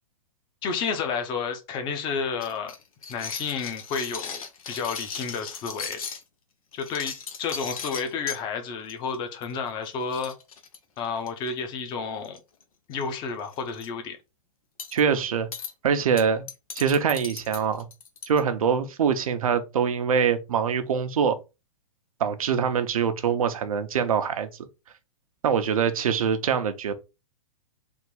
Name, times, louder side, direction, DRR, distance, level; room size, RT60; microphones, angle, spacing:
voice 1, 0.6-2.7 3.1-6.0 6.7-10.3 11.0-12.4 12.9-14.2, left 5 dB, 25° left, 0.8 m, -31 dB
sound 1, 2.4-6.2 6.7-8.4 8.9-9.2 9.4-9.6 9.8-9.9 10.1-11.5 12.2-12.6 12.9-13.1 13.4-13.9 14.8-15.0 15.5-15.7 16.2-18.4, left 6 dB, 90° left, 1.0 m, -37 dB
voice 2, 14.9-15.5 15.8-16.4 16.8-17.9 18.2-21.4 22.2-24.5 25.4-26.9, right 7 dB, 85° right, 0.8 m, -24 dB
3.6 x 2.6 x 4.6 m
hypercardioid pair, 145°, 18 cm